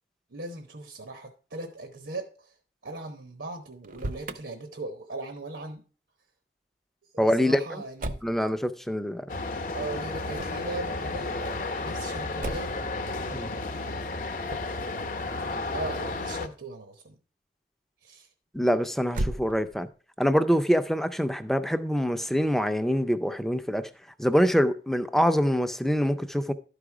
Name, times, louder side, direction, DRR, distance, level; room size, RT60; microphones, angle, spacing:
voice 1, 0.3-2.5 2.8-5.8 7.1-8.2 9.7-12.8 15.7-17.2 18.0-18.3, right 2 dB, 80° right, 1.0 m, -38 dB
Motor vehicle (road), 3.7-4.4 8.0-8.4 10.3-10.7 12.4-12.8 14.4-14.8 19.0-19.9, right 1 dB, 45° right, 0.6 m, -34 dB
voice 2, 7.2-7.6 8.2-9.3 13.3-13.5 18.5-19.9 20.2-23.9 24.2-26.5, equal, ahead, 0.5 m, -25 dB
sound 1, 9.3-16.5, left 2 dB, 50° left, 0.8 m, -32 dB
12.0 x 5.0 x 4.8 m
head